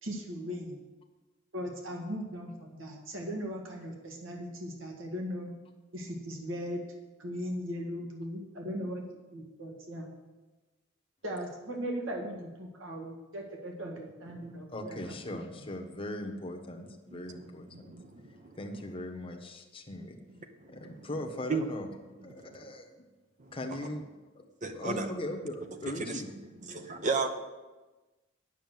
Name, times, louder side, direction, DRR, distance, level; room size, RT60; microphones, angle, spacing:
voice 1, 0.0-0.8 1.5-5.5 5.9-6.8 7.2-9.0 9.3-10.1 11.2-15.0, equal, 70° right, 1 dB, 1.8 m, -38 dB
voice 2, 14.7-17.9 18.6-20.2 20.7-21.9 22.2-22.9 23.5-24.1 24.3-24.4 24.7-26.3, left 1 dB, 25° left, 2 dB, 1.0 m, -39 dB
voice 3, 17.7-18.6 20.6-20.8 21.5-21.7 22.4-22.7 23.4-23.5 24.6-25.1 26.0-26.2 26.6-27.3, right 4 dB, 35° right, 7 dB, 0.8 m, -34 dB
9.1 x 6.6 x 7.7 m, 1.2 s
head